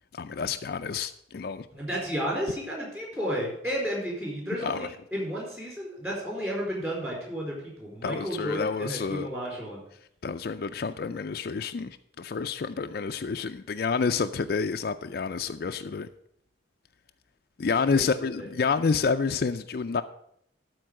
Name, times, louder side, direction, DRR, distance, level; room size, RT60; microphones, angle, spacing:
voice 1, 0.1-1.7 4.6-4.9 8.0-9.3 10.2-16.1 17.6-20.0, left 5 dB, 55° left, 9 dB, 0.4 m, -29 dB
voice 2, 1.7-9.8 17.9-18.1 18.4-18.5, equal, 10° right, -3 dB, 4.3 m, -32 dB
12.5 x 4.5 x 7.5 m, 0.71 s
head